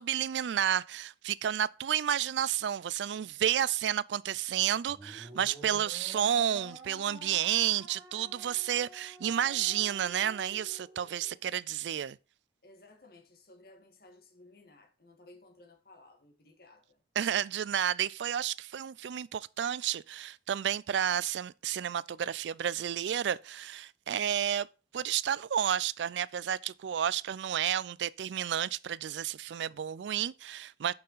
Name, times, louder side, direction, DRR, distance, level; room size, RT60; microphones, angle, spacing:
voice 1, 0.0-12.2 17.2-24.7 24.9-30.9, right 10 dB, 80° right, 0.4 m, -31 dB
sound 1, 4.9-11.4, right 1 dB, 20° right, 3.4 m, -50 dB
voice 2, 12.6-17.0, left 2 dB, 60° left, 1.7 m, -57 dB
6.6 x 5.6 x 5.5 m
head